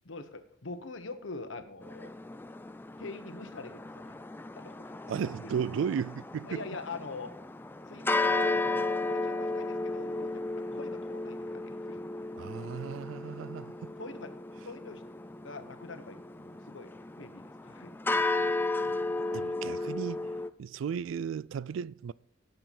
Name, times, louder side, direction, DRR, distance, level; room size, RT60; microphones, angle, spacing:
voice 1, 0.0-2.1 3.0-4.1 4.6-5.5 6.5-7.3 7.9-8.6 9.1-12.0 12.4-12.8 14.0-14.3 14.6-15.0 15.4-16.9 17.2-17.9, left 3 dB, 70° left, 1.1 m, -44 dB
sound 1, 1.8-20.5, left 2 dB, 10° left, 0.3 m, -34 dB
voice 2, 5.1-6.6 12.4-13.9 19.3-20.3 20.6-22.1, right 7 dB, 70° right, 0.3 m, -35 dB
17.0 x 6.8 x 4.1 m
head